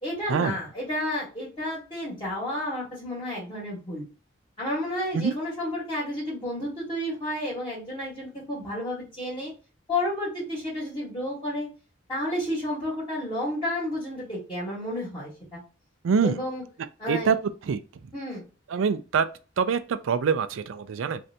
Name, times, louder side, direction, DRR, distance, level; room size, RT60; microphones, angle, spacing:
voice 1, 0.0-4.0 4.6-9.5 9.9-11.7 12.1-15.6 16.2-16.6 17.0-17.3 18.1-18.4, left 1 dB, 25° left, 1.3 m, -31 dB
voice 2, 16.0-16.4 17.1-17.4 17.6-17.8 18.7-19.3 19.6-21.2, right 6 dB, 75° right, 0.4 m, -24 dB
3.2 x 2.6 x 2.7 m
head